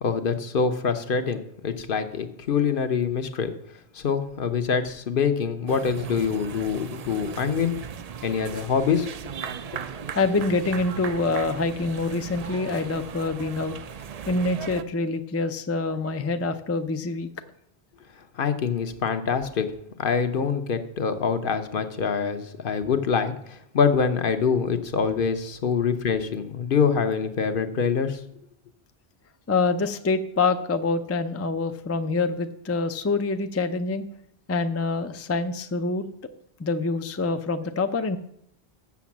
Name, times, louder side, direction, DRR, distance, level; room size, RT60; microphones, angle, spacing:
voice 1, 0.0-3.5 3.9-7.8 8.2-9.1 9.7-9.8 18.3-19.7 20.0-28.2, left 6 dB, 60° left, 8 dB, 0.9 m, -25 dB
sound 1, 5.7-14.8, right 7 dB, 50° right, 0.5 m, -37 dB
voice 2, 10.1-13.8 14.3-17.3 29.5-34.0 34.5-36.1 36.6-38.2, left 3 dB, 25° left, 7 dB, 0.3 m, -26 dB
7.1 x 6.7 x 7.2 m, 0.73 s
omnidirectional pair, 1.1 m